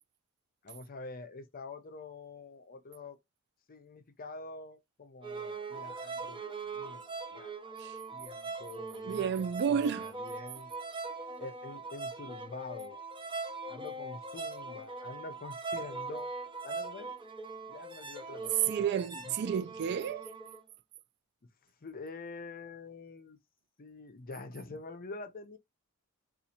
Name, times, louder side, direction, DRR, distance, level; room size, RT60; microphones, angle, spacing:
voice 1, 0.6-3.2 3.7-6.4 6.7-7.8 8.1-9.3 9.7-10.7 11.1-13.0 13.7-16.3 16.6-17.1 17.7-18.7 19.1-19.3 21.8-23.4 23.8-25.6, left 3 dB, 40° left, 0.6 m, -46 dB
sound 1, 5.2-20.6, right 3 dB, 20° right, 0.7 m, -41 dB
voice 2, 9.1-10.1 18.7-20.3, right 7 dB, 50° right, 0.3 m, -31 dB
4.0 x 2.4 x 2.7 m
head